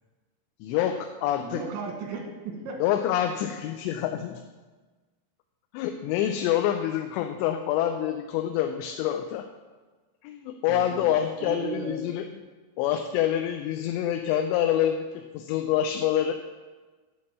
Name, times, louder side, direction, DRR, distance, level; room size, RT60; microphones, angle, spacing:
voice 1, 0.6-1.6 2.8-4.4 5.7-9.5 10.2-12.3 12.8-16.3, left 10 dB, 85° left, 6 dB, 2.7 m, -26 dB
voice 2, 1.3-2.8 10.7-11.1 11.4-12.1, right 4 dB, 90° right, 3 dB, 3.6 m, -35 dB
10.5 x 4.2 x 7.5 m, 1.3 s
omnidirectional pair, 5.0 m